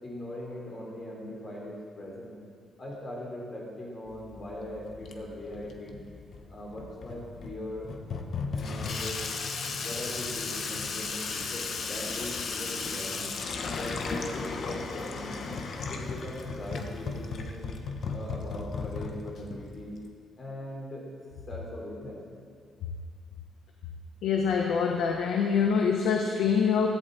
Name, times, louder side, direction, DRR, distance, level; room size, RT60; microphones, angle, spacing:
voice 1, 0.0-2.3 2.8-6.0 6.5-7.9 8.5-9.2 9.8-13.3 13.6-15.5 15.9-17.7 18.1-20.0 20.4-21.1 21.5-22.2, left 1 dB, 40° left, -3 dB, 4.6 m, -40 dB
Water tap faucet / Sink (filling or washing), 4.1-20.1, left 4 dB, 55° left, 1.2 m, -36 dB
voice 2, 24.2-26.9, left 6 dB, 90° left, 2 dB, 1.1 m, -25 dB
16.5 x 14.5 x 4.3 m, 2.1 s
cardioid pair, 130°, 0 cm